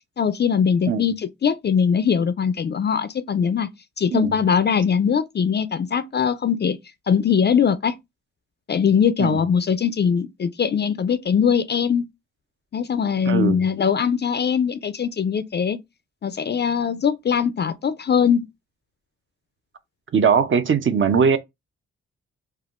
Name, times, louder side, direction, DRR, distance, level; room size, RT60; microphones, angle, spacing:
voice 1, 0.2-3.7 4.0-6.8 7.1-7.9 8.7-12.0 12.7-15.8 16.2-18.5, left 7 dB, 35° left, 0.4 m, -21 dB
voice 2, 13.3-13.6 20.1-21.4, right 6 dB, 40° right, 0.6 m, -20 dB
3.4 x 2.2 x 2.4 m
supercardioid pair, 45°, 30 cm